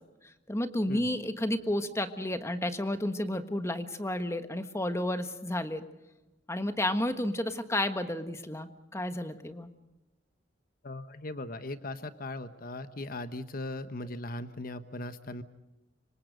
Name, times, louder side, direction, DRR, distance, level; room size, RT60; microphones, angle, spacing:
voice 1, 0.5-5.8 6.5-9.7, left 1 dB, 15° left, 9 dB, 1.4 m, -31 dB
voice 2, 10.8-15.4, left 2 dB, 50° left, 11 dB, 1.1 m, -39 dB
26.0 x 25.0 x 5.2 m, 0.99 s
head